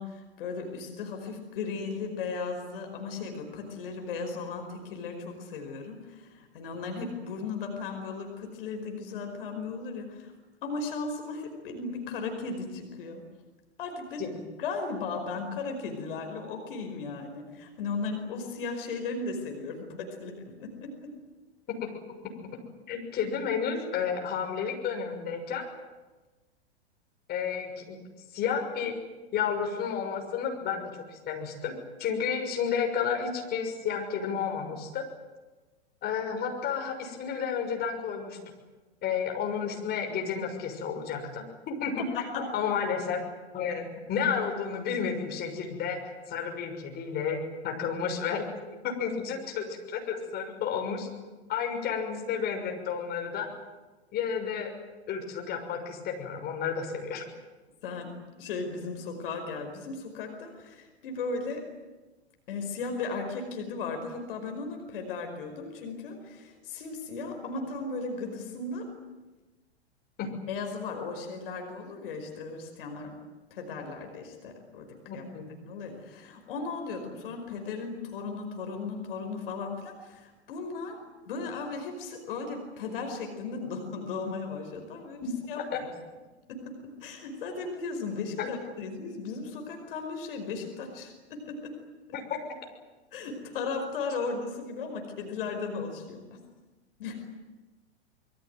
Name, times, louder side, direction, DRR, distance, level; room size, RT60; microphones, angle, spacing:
voice 1, 0.0-10.3 10.6-13.2 13.8-21.1 42.1-42.5 57.8-58.1 58.4-61.6 62.5-68.9 70.5-73.2 73.5-74.9 75.1-75.2 75.6-81.0 81.3-85.9 86.5-86.7 87.0-91.7 92.1-92.2 93.1-96.4 97.0-97.2, left 4 dB, 55° left, 4 dB, 5.2 m, -36 dB
voice 2, 22.9-25.7 27.3-28.0 28.3-29.0 29.3-35.1 36.0-38.4 39.0-42.0 42.3-43.2 43.5-47.4 47.6-48.5 48.8-51.1 51.5-53.5 54.1-54.7 55.1-57.2 70.2-70.3 75.1-75.4 85.5-85.8 88.4-88.5, left 7 dB, 30° left, 3 dB, 6.4 m, -31 dB
25.5 x 22.5 x 9.2 m, 1.2 s
figure-of-eight pair, 100°, 33 cm